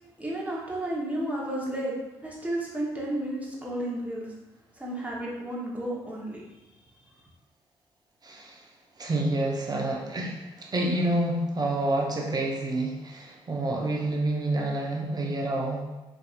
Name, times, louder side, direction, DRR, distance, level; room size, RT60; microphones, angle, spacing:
voice 1, 0.2-4.3 4.8-6.4, right 1 dB, 10° right, -4 dB, 1.1 m, -32 dB
voice 2, 8.2-8.6 9.0-15.8, right 1 dB, 35° right, -1 dB, 0.8 m, -28 dB
3.5 x 2.8 x 2.5 m, 1.0 s
hypercardioid pair, 45°, 12 cm